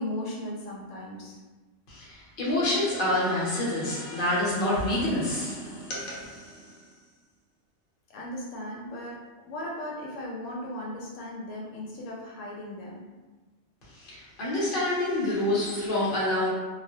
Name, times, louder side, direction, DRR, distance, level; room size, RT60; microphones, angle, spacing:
voice 1, 0.0-1.4 8.1-9.2 9.4-13.1, left 1 dB, 85° left, -4 dB, 0.9 m, -37 dB
voice 2, 1.9-6.9 13.8-16.5, left 1 dB, 50° left, -7 dB, 0.9 m, -28 dB
2.3 x 2.0 x 2.6 m, 1.2 s
omnidirectional pair, 1.3 m